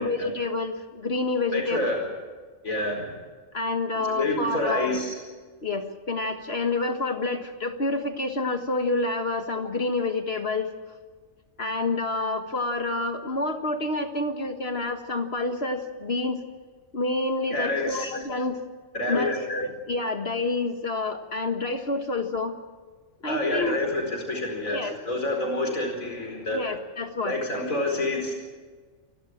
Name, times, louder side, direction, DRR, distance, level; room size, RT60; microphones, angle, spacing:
voice 1, 0.0-1.9 3.5-5.0 5.6-10.7 11.6-16.4 16.9-18.6 19.1-22.5 23.2-24.0 24.7-25.0 26.5-27.4, left 2 dB, 50° left, 7 dB, 1.8 m, -28 dB
voice 2, 1.5-2.0 2.6-3.1 4.1-5.1 17.5-18.1 18.9-19.3 23.3-26.6 27.2-28.3, left 1 dB, 90° left, 2 dB, 5.0 m, -28 dB
28.5 x 13.0 x 8.8 m, 1.5 s
omnidirectional pair, 1.4 m